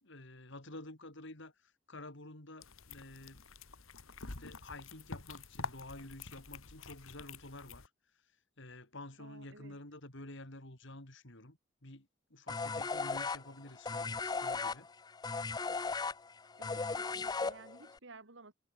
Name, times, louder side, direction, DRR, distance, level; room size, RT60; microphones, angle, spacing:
voice 1, 0.0-3.5 4.4-7.9 8.6-14.9, left 2 dB, 60° left, 4.4 m, -50 dB
sound 1, 2.6-7.9, left 4 dB, 80° left, 2.2 m, -47 dB
voice 2, 9.2-9.8 16.6-18.5, right 3 dB, 60° right, 2.1 m, -55 dB
sound 2, 12.5-18.0, left 4 dB, 20° left, 0.4 m, -36 dB
head